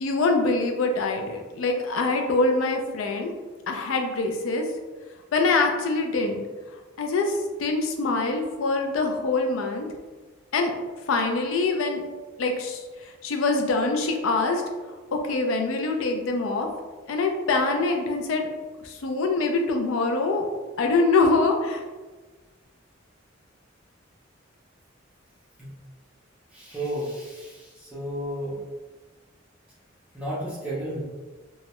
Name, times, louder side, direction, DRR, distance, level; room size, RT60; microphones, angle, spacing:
voice 1, 0.0-3.3 3.7-4.6 5.3-6.4 7.0-9.9 10.5-10.7 11.1-12.0 12.4-14.6 15.1-16.7 17.1-18.5 18.8-20.5 20.8-21.8, left 3 dB, 85° left, 3 dB, 0.4 m, -24 dB
voice 2, 26.5-27.5 27.9-28.5 30.1-31.0, right 1 dB, 5° right, -10 dB, 0.5 m, -32 dB
2.3 x 2.0 x 2.8 m, 1.3 s
head